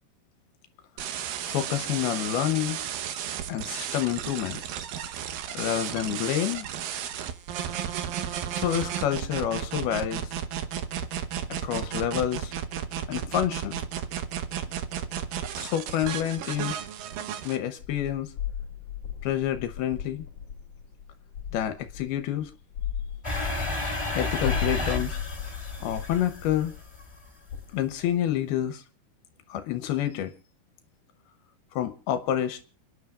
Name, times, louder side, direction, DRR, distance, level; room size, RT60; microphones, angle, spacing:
sound 1, 1.0-17.6, right 9 dB, 70° right, 2.5 m, -33 dB
voice 1, 1.4-2.8 3.5-4.6 5.5-6.7 8.5-10.3 11.5-12.5 13.1-13.8 15.6-16.8 17.4-18.3 19.2-20.2 21.5-22.5 24.1-25.2 25.8-26.7 27.7-28.8 29.5-30.3 31.7-32.6, left 11 dB, 80° left, 2.8 m, -28 dB
sound 2, 17.8-28.2, left 8 dB, 45° left, 2.4 m, -36 dB
sound 3, 23.2-27.1, left 2 dB, 10° left, 2.4 m, -32 dB
30.0 x 10.0 x 2.5 m
omnidirectional pair, 4.6 m